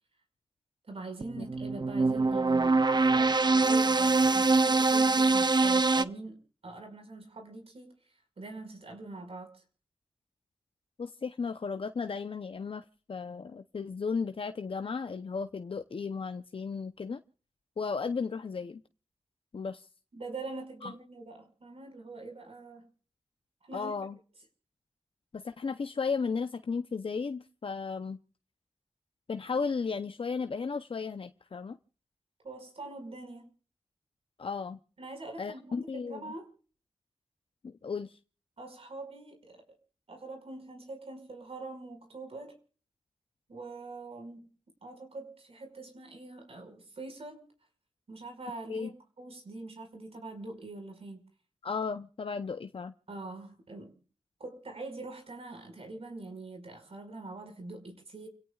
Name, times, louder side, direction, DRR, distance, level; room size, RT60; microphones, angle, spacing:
voice 1, 0.8-9.6 20.1-22.9 23.6-23.9 32.4-33.5 35.0-36.5 38.6-39.6 40.1-42.6 43.5-44.5 44.8-47.4 48.1-51.2 53.1-53.9 54.4-58.3, right 2 dB, 75° right, 5.3 m, -44 dB
sound 1, 1.2-6.0, right 3 dB, 45° right, 0.7 m, -24 dB
voice 2, 11.0-17.2 17.8-18.8 19.5-19.9 20.8-20.9 23.7-24.2 25.3-28.2 29.3-31.8 34.4-34.8 35.4-36.3 37.6-38.2 48.7-48.9 51.6-52.9, left 5 dB, 65° left, 0.7 m, -35 dB
30.0 x 17.0 x 2.4 m
wide cardioid pair, 70°, 10 cm